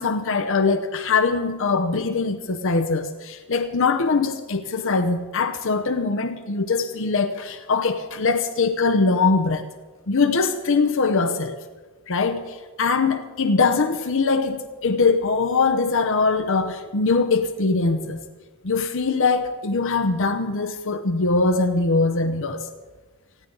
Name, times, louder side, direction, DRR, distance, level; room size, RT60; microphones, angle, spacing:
voice 1, 0.0-9.6 10.1-11.6 12.1-18.2 18.6-22.7, left 4 dB, 60° left, 8 dB, 0.8 m, -22 dB
19.0 x 15.5 x 3.9 m, 1.3 s
head